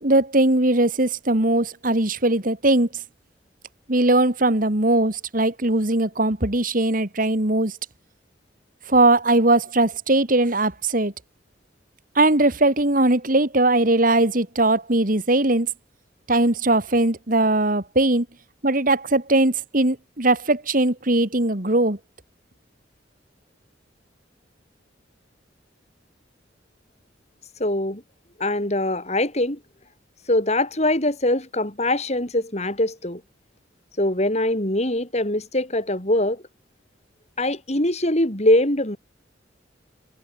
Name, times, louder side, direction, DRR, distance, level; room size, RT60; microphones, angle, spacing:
voice 1, 0.0-2.9 3.9-7.7 8.9-11.1 12.2-15.7 16.3-18.3 18.6-22.0, right 2 dB, 45° right, 2.5 m, -20 dB
voice 2, 27.6-28.0 28.4-29.6 30.3-33.2 34.0-36.4 37.4-39.0, left 1 dB, 35° left, 5.2 m, -22 dB
head